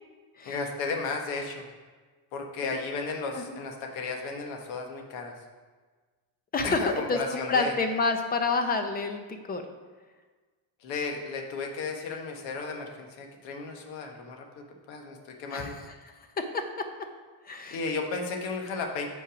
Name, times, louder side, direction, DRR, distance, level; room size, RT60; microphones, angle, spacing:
voice 1, 0.5-1.7 2.3-5.3 6.6-7.7 10.8-15.8 17.7-19.1, left 4 dB, 70° left, 3 dB, 1.3 m, -34 dB
voice 2, 6.5-9.6 15.5-16.0 16.4-16.6 17.5-17.8, left 3 dB, 20° left, 6 dB, 0.6 m, -29 dB
7.0 x 5.6 x 5.0 m, 1.4 s
cardioid pair, 160°, 47 cm